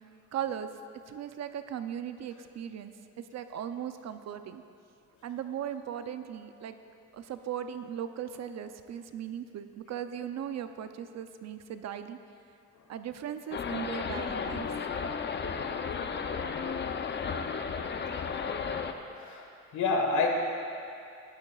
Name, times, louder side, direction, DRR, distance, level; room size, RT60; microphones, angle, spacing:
voice 1, 0.3-0.7 1.1-2.9 3.3-4.6 5.2-6.7 7.1-12.2 12.9-14.6, right 9 dB, 60° right, 9 dB, 0.6 m, -38 dB
sound 1, 13.5-18.9, left 5 dB, 35° left, 0.6 m, -33 dB
voice 2, 19.2-19.5 19.7-20.3, left 3 dB, 75° left, 1 dB, 1.6 m, -27 dB
15.5 x 11.5 x 2.4 m, 2.5 s
cardioid pair, 90°, 30 cm